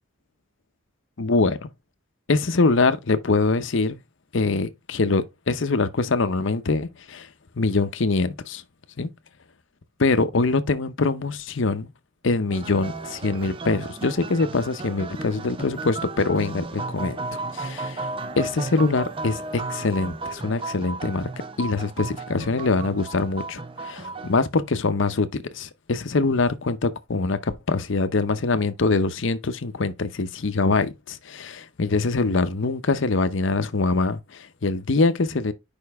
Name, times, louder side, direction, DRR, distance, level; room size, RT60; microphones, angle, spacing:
voice 1, 1.2-1.7 2.3-4.0 4.3-7.3 7.6-8.6 9.0-9.1 10.0-11.9 12.2-17.2 17.5-18.0 18.4-21.3 21.6-35.5, left 3 dB, 65° left, 0.7 m, -24 dB
sound 1, 12.5-24.3, right 3 dB, 25° right, 0.4 m, -34 dB
6.6 x 5.2 x 3.5 m
head